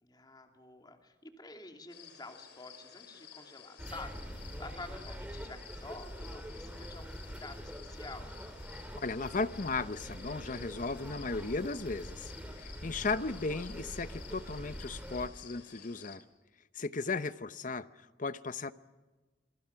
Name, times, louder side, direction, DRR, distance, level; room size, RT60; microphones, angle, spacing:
voice 1, 0.0-8.3 13.0-13.2 16.8-17.1, left 2 dB, 25° left, 4 dB, 2.9 m, -49 dB
sound 1, 1.9-16.2, left 8 dB, 80° left, 3.3 m, -54 dB
sound 2, 3.8-15.3, equal, 10° right, 2.8 m, -44 dB
voice 2, 9.0-12.3 12.6-16.2 16.7-17.9 18.2-18.7, left 3 dB, 50° left, 14 dB, 0.9 m, -35 dB
27.0 x 23.5 x 5.9 m, 1.2 s
head